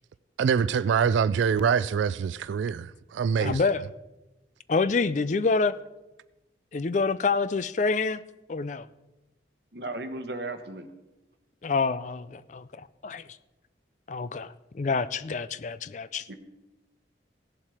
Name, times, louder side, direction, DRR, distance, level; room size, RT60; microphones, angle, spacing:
voice 1, 0.4-3.6, right 6 dB, 85° right, 0.3 m, -25 dB
voice 2, 3.4-3.8 4.7-5.7 6.7-8.2 8.5-8.9 11.6-13.2 14.1-16.2, left 4 dB, 40° left, 0.4 m, -27 dB
voice 3, 9.7-10.9 16.3-16.4, right 2 dB, 65° right, 1.1 m, -35 dB
17.0 x 7.3 x 4.9 m
head